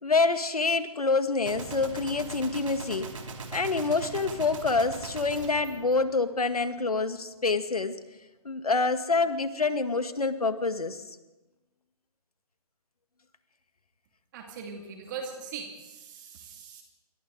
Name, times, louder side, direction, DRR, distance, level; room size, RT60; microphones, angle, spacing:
voice 1, 0.0-3.1 3.5-8.0 8.4-11.0, left 4 dB, 70° left, 9 dB, 1.9 m, -27 dB
Gunshot gunfire, 1.5-6.7, right 4 dB, 55° right, 3.3 m, -40 dB
voice 2, 14.3-16.8, right 5 dB, 30° right, 2 dB, 2.4 m, -40 dB
28.0 x 24.0 x 3.9 m, 1.1 s
figure-of-eight pair, 140°, 20 cm